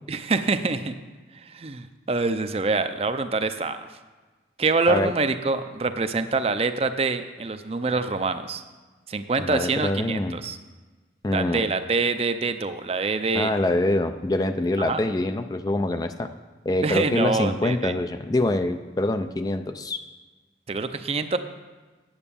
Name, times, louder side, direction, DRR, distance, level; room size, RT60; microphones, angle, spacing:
voice 1, 0.1-0.9 1.4-3.9 4.6-8.6 9.1-10.6 11.3-13.5 14.8-15.0 16.8-17.9 20.7-21.4, right 3 dB, 35° right, 10 dB, 0.5 m, -25 dB
voice 2, 9.4-10.4 11.2-11.6 13.3-16.3 16.7-20.0, left 2 dB, 20° left, 9 dB, 0.4 m, -25 dB
8.9 x 8.2 x 6.9 m, 1.3 s
head